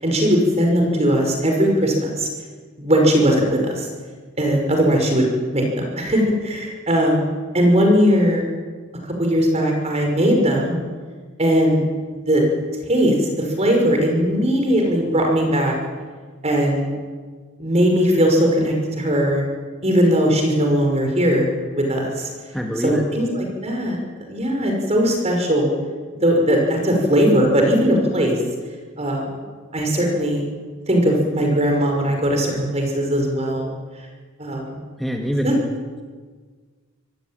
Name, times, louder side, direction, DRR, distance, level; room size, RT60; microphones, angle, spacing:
voice 1, 0.0-2.3 2.8-3.9 4.4-7.3 7.5-8.4 9.2-10.8 11.4-11.8 12.1-12.4 12.9-15.7 16.4-16.9 17.6-19.4 19.8-22.3 22.8-25.7 26.2-28.4 29.0-29.2 29.7-30.4 30.9-33.7 34.4-34.8 35.4-35.5, equal, 30° right, 2 dB, 5.6 m, -19 dB
voice 2, 22.5-23.0 35.0-35.6, equal, ahead, 1 dB, 1.8 m, -24 dB
25.5 x 18.0 x 9.1 m, 1.5 s
head